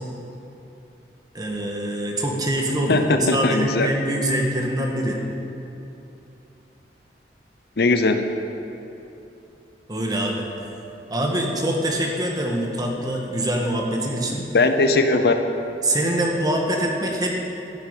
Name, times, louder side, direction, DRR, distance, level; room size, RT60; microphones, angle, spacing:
voice 1, 1.3-5.2 9.9-10.5 11.1-14.4 15.8-17.3, right 1 dB, 20° right, 0 dB, 1.6 m, -24 dB
voice 2, 2.9-3.9 7.8-8.2 14.5-15.3, left 3 dB, 60° left, 7 dB, 0.8 m, -19 dB
13.5 x 7.3 x 9.0 m, 2.9 s
head